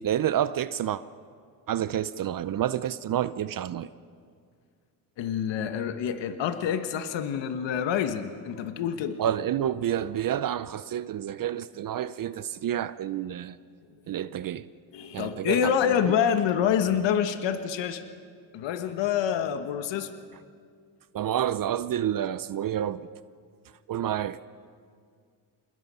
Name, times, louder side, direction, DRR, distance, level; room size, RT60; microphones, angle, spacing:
voice 1, 0.0-1.0 1.7-3.9 9.2-13.6 14.1-14.7 15.1-15.7 21.1-23.1 23.9-24.4, right 10 dB, 45° right, 15 dB, 0.7 m, -29 dB
voice 2, 5.2-9.2 14.9-18.0 18.5-20.1, left 8 dB, 70° left, 9 dB, 1.4 m, -27 dB
27.5 x 20.5 x 5.6 m, 2.1 s
supercardioid pair, 80°, 46 cm